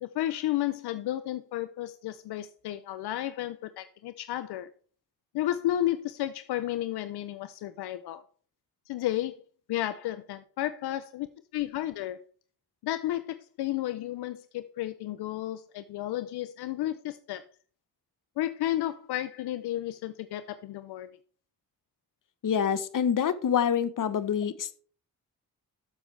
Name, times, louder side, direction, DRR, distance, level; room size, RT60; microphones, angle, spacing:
voice 1, 0.0-4.7 5.3-8.2 8.9-9.4 9.7-11.3 11.5-12.2 12.8-17.4 18.4-21.2, left 13 dB, 85° left, 13 dB, 0.6 m, -32 dB
voice 2, 22.4-24.7, left 8 dB, 55° left, 15 dB, 1.0 m, -26 dB
12.5 x 7.2 x 3.3 m, 0.44 s
cardioid pair, 70°, 39 cm